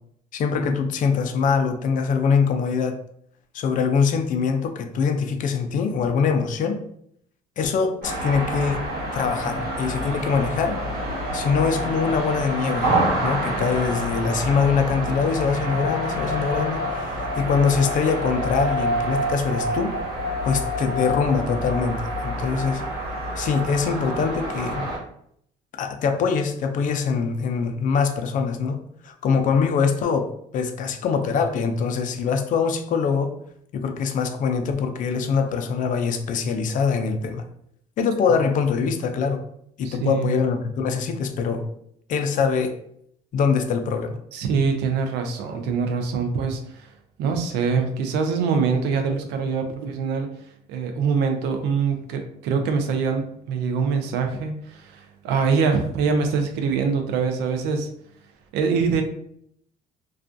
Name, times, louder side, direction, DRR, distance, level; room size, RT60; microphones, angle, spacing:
voice 1, 0.3-3.0 3.5-6.8 7.6-8.8 9.1-10.8 11.3-12.9 13.2-19.9 20.4-22.8 23.4-24.9 25.7-28.8 29.0-33.3 33.7-37.5 38.0-39.4 39.8-41.7 42.1-42.8 43.3-44.2, left 5 dB, 50° left, 6 dB, 0.4 m, -23 dB
sound 1, 8.0-25.0, equal, 65° right, 1.1 m, -27 dB
voice 2, 39.8-40.3 44.3-46.9 47.2-50.3 50.7-57.9 58.5-59.0, right 5 dB, 85° right, 5 dB, 0.4 m, -24 dB
2.4 x 2.2 x 2.5 m, 0.70 s
cardioid pair, 110°, 17 cm